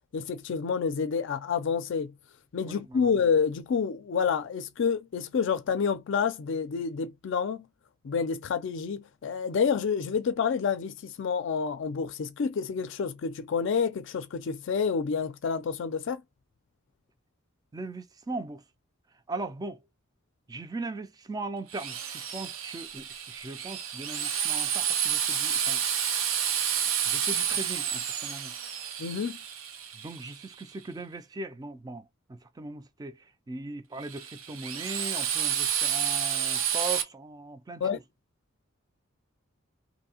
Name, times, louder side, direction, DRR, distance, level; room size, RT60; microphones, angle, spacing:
voice 1, 0.1-2.1 2.5-7.7 8.0-16.2 29.0-29.4 37.8-38.0, left 6 dB, 60° left, 0.4 m, -28 dB
voice 2, 2.6-3.1 17.7-18.6 19.3-19.8 20.5-25.8 27.1-28.5 29.9-38.0, right 2 dB, 20° right, 0.3 m, -39 dB
Drill, 21.7-30.6 34.0-37.0, right 9 dB, 85° right, 0.6 m, -30 dB
2.6 x 2.6 x 2.8 m
head